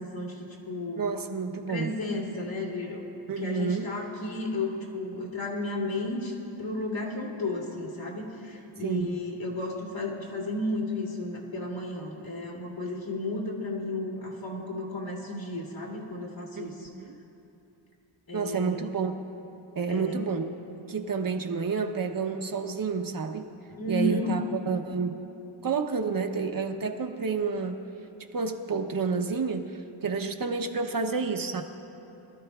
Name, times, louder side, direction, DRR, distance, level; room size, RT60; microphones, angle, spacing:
voice 1, 0.0-1.0 1.7-3.0 3.4-16.9 18.3-18.9 19.9-20.2 23.8-24.4, left 2 dB, 65° left, -3 dB, 2.8 m, -33 dB
voice 2, 1.0-1.9 3.3-3.9 8.8-9.2 16.5-17.2 18.3-19.1 19.8-20.5 20.9-23.5 23.9-25.2 25.6-27.8 28.3-31.6, right 5 dB, 45° right, 5 dB, 0.8 m, -30 dB
23.5 x 13.5 x 2.3 m, 2.9 s
wide cardioid pair, 125°, 49 cm